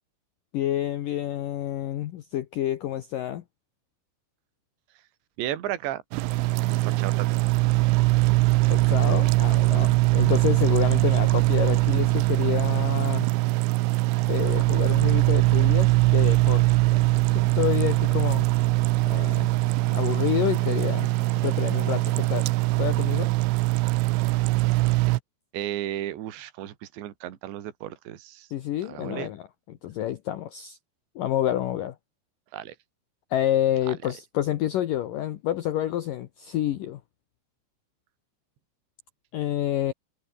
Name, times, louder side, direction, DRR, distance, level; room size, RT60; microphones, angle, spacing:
voice 1, 0.5-3.4 8.7-13.3 14.3-16.7 16.9-17.0 17.3-18.5 19.1-19.6 19.9-21.1 21.4-22.5 22.8-23.3 28.5-29.4 29.7-30.8 31.2-32.0 33.3-37.0 39.3-39.9, left 12 dB, 80° left, 1.9 m, -28 dB
voice 2, 5.4-6.0 6.7-7.5 7.8-8.0 11.7-11.8 12.1-12.3 25.5-28.5 28.8-29.3 32.5-32.8 33.9-34.0, right 13 dB, 70° right, 4.3 m, -34 dB
sound 1, 6.1-25.2, right 20 dB, 85° right, 3.1 m, -22 dB
omnidirectional pair, 5.5 m